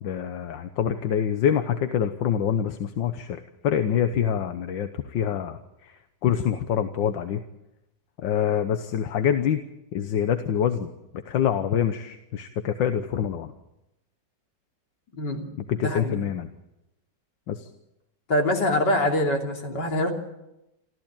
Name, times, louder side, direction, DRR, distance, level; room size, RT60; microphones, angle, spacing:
voice 1, 0.0-7.4 8.2-9.6 9.9-10.9 11.3-13.5 15.7-16.5 17.5-17.7, left 9 dB, 85° left, 8 dB, 1.7 m, -26 dB
voice 2, 15.8-16.2 18.3-20.1, left 1 dB, 70° left, 2 dB, 3.7 m, -24 dB
27.0 x 14.5 x 8.8 m, 0.93 s
omnidirectional pair, 2.0 m